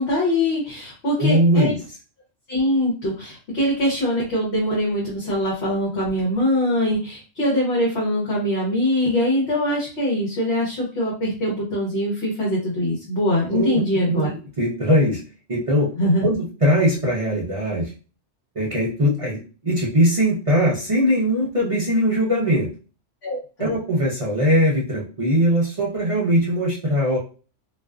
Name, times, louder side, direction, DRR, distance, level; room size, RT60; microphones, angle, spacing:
voice 1, 0.0-1.7 2.5-14.3 16.0-16.3 23.2-23.7, left 1 dB, 60° left, -5 dB, 1.1 m, -23 dB
voice 2, 1.2-1.8 13.5-13.8 14.1-14.2 14.6-15.2 15.5-15.9 16.2-17.9 18.6-22.7 23.6-27.2, equal, 50° right, -4 dB, 0.4 m, -20 dB
2.4 x 2.3 x 2.3 m, 0.35 s
omnidirectional pair, 1.3 m